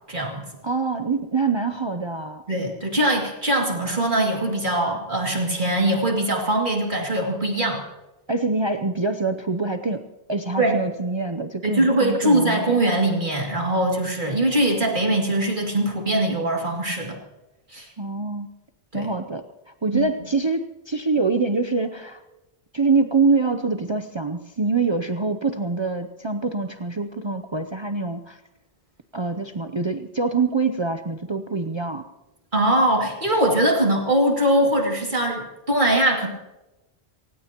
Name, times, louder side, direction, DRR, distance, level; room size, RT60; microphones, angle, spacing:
voice 1, 0.1-0.4 2.5-7.8 10.6-10.8 11.6-17.2 17.7-17.9 18.9-19.1 19.9-20.0 32.5-36.3, right 1 dB, 50° right, 0 dB, 2.8 m, -22 dB
voice 2, 0.6-2.4 8.3-10.0 10.3-12.8 18.0-18.5 18.9-19.4 19.8-22.2 22.7-28.4 29.1-32.0, right 4 dB, 30° right, 8 dB, 0.6 m, -25 dB
27.5 x 16.0 x 3.0 m, 1.0 s
omnidirectional pair, 1.1 m